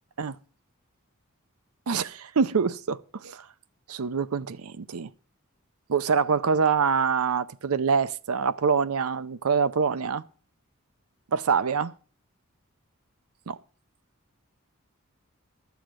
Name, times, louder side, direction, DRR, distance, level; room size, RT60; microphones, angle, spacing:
voice 1, 1.9-3.5 3.9-5.1 5.9-10.2 11.3-11.9 13.5-13.6, right 6 dB, 75° right, 0.6 m, -25 dB
13.0 x 7.1 x 6.1 m
head